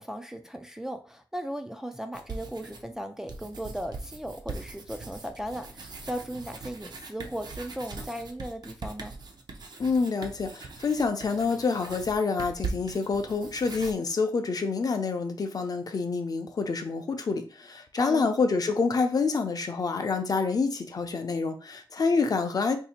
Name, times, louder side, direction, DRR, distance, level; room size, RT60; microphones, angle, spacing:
voice 1, 0.0-9.1 18.0-18.4, equal, 5° right, 6 dB, 0.3 m, -37 dB
sound 1, 2.1-2.9 3.3-13.9, right 4 dB, 55° right, 0.6 m, -41 dB
voice 2, 9.8-22.8, left 4 dB, 50° left, 6 dB, 0.6 m, -27 dB
2.8 x 2.7 x 4.2 m, 0.37 s
wide cardioid pair, 115°, 8 cm